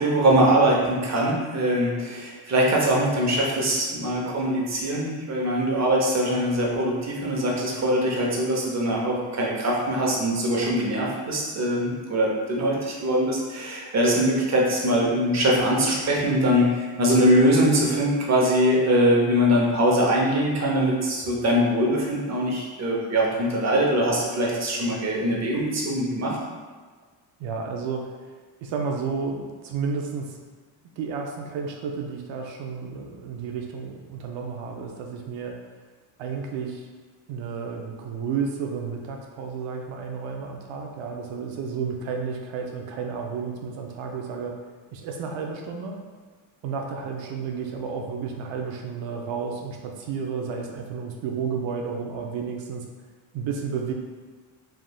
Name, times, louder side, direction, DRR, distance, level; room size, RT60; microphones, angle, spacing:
voice 1, 0.0-26.4, equal, 35° right, -2 dB, 0.8 m, -22 dB
voice 2, 27.4-28.1 28.6-30.4 31.0-35.6 36.2-36.9 37.3-44.6 44.9-46.0 46.6-52.9 53.3-53.9, right 5 dB, 75° right, 2 dB, 0.5 m, -32 dB
3.4 x 2.4 x 2.2 m, 1.5 s
cardioid pair, 90°, 46 cm